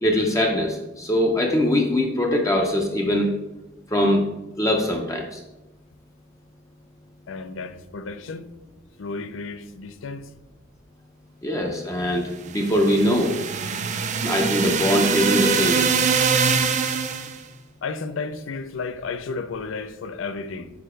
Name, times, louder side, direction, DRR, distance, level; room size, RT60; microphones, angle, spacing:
voice 1, 0.0-3.3 3.9-4.3 4.6-5.4 11.4-13.3 14.2-15.8, left 1 dB, 15° left, 0.5 m, -22 dB
voice 2, 7.3-8.5 9.0-10.3 17.8-20.7, left 4 dB, 75° left, 0.5 m, -32 dB
sound 1, 12.5-17.4, right 5 dB, 40° right, 0.4 m, -23 dB
4.8 x 4.4 x 4.9 m
head